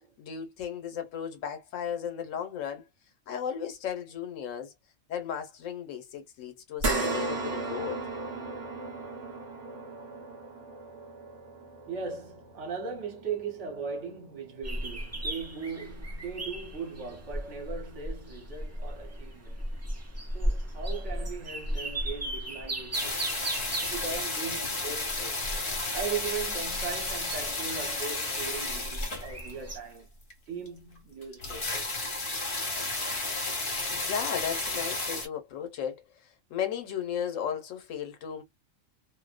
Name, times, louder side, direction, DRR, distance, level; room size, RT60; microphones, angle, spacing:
voice 1, 0.2-2.8 3.3-4.7 5.1-8.0 33.9-36.0 36.5-38.4, left 8 dB, 85° left, 1.1 m, -35 dB
sound 1, 6.8-15.4 15.9-16.0 17.4-17.5, right 2 dB, 45° right, 0.9 m, -36 dB
voice 2, 11.9-19.6 20.3-23.2 23.8-25.4 25.9-30.1 30.5-31.9, right 5 dB, 70° right, 1.2 m, -38 dB
sound 2, 14.6-29.8, right 1 dB, 25° right, 0.3 m, -36 dB
sound 3, 22.9-29.7 30.3-30.4 30.7-30.8 31.0-31.1 31.2-35.3, left 2 dB, 45° left, 1.2 m, -33 dB
2.7 x 2.0 x 2.4 m
omnidirectional pair, 1.3 m